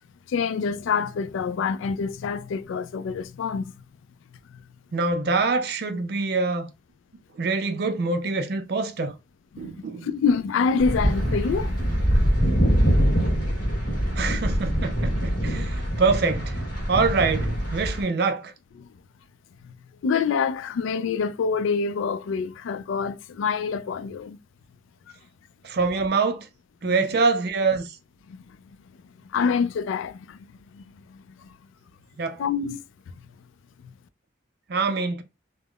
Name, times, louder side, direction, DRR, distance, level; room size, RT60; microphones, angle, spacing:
voice 1, 0.3-3.7 9.6-9.7 10.0-12.2 18.8-18.9 19.6-19.7 20.0-24.4 26.8-27.1 28.3-28.4 29.3-30.8 31.1-31.5 32.4-32.8 33.8-33.9, left 5 dB, 80° left, 0.3 m, -26 dB
voice 2, 4.9-6.7 7.4-9.2 9.6-10.1 14.1-16.6 16.9-18.5 25.6-26.5 26.8-27.9 32.2-32.4 34.7-35.2, right 4 dB, 55° right, 0.4 m, -25 dB
sound 1, 10.8-18.0, equal, 45° left, 1.6 m, -24 dB
3.5 x 2.0 x 2.3 m
head